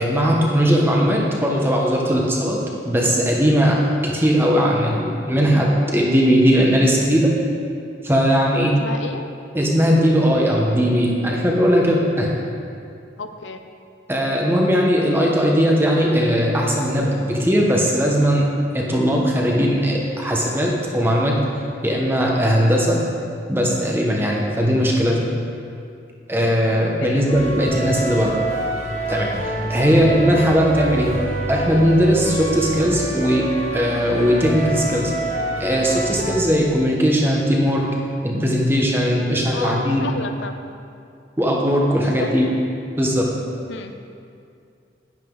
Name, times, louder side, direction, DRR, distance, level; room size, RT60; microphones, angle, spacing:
voice 1, 0.0-7.3 8.0-8.7 9.5-12.3 14.1-18.5 18.7-21.3 21.8-23.0 23.5-25.2 26.3-28.4 29.1-31.1 31.5-33.4 33.7-35.1 35.6-37.8 38.2-40.1 41.4-42.5 43.0-43.3, equal, 10° right, -2 dB, 1.2 m, -18 dB
voice 2, 8.8-9.3 13.2-13.6 27.0-27.3 29.9-30.1 39.5-40.6 41.9-42.5 43.7-43.9, left 3 dB, 85° left, 7 dB, 0.6 m, -32 dB
sound 1, 27.3-36.4, right 2 dB, 40° left, 1.6 m, -27 dB
10.5 x 10.5 x 3.9 m, 2.4 s
head